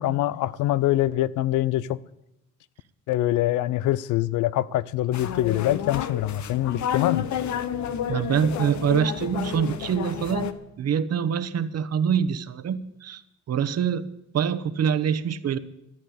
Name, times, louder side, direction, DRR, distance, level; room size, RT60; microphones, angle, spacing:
voice 1, 0.0-2.0 3.1-7.3, left 14 dB, 90° left, 0.6 m, -24 dB
sound 1, 5.1-10.5, left 9 dB, 70° left, 1.1 m, -30 dB
voice 2, 8.1-13.2 13.5-14.1 14.3-15.6, right 8 dB, 55° right, 1.0 m, -25 dB
13.5 x 8.8 x 8.4 m
cardioid pair, 90°, 30 cm